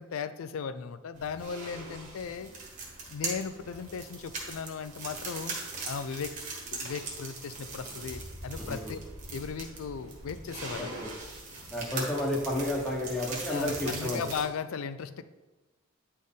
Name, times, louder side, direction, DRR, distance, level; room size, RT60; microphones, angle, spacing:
voice 1, 0.0-2.5 3.1-5.6 5.8-6.4 6.7-9.0 9.3-10.9 13.5-15.2, left 6 dB, 80° left, 13 dB, 0.4 m, -37 dB
sound 1, 1.1-14.4, right 3 dB, 35° right, 1.4 m, -40 dB
voice 2, 8.6-8.9 10.8-11.1 11.7-14.3, left 1 dB, 5° left, -4 dB, 1.0 m, -31 dB
9.1 x 4.3 x 3.6 m, 1.2 s
head